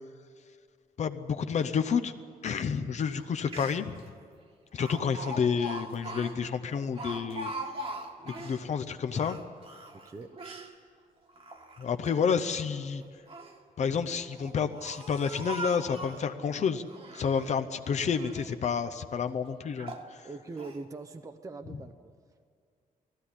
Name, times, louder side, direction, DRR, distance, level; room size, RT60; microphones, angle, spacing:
voice 1, 1.0-2.1 2.4-4.0 4.7-7.5 8.3-9.4 11.8-13.0 13.8-16.8 17.1-20.3, left 6 dB, 50° left, 9 dB, 0.7 m, -30 dB
Speech, 3.2-3.3 3.5-4.0 4.8-8.6 9.1-10.7 11.3-12.1 13.0-13.6 14.3-16.3 16.9-17.7 18.1-18.6 19.1-19.2 19.8-20.1 20.6-20.8, right 1 dB, 40° right, 1.6 m, -41 dB
voice 2, 20.2-22.1, right 3 dB, 20° right, 8 dB, 0.7 m, -42 dB
18.5 x 15.0 x 10.0 m, 2.1 s
wide cardioid pair, 165°, 15 cm